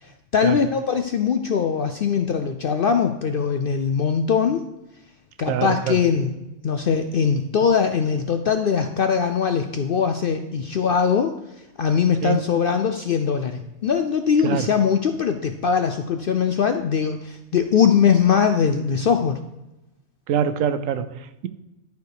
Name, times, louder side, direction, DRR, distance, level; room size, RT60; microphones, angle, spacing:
voice 1, 0.0-4.7 5.4-11.3 11.8-19.4, left 6 dB, 60° left, 0.6 m, -21 dB
voice 2, 5.5-5.9 12.2-12.4 14.4-14.7 20.3-21.5, right 9 dB, 75° right, 1.0 m, -24 dB
11.5 x 4.6 x 4.7 m
omnidirectional pair, 1.4 m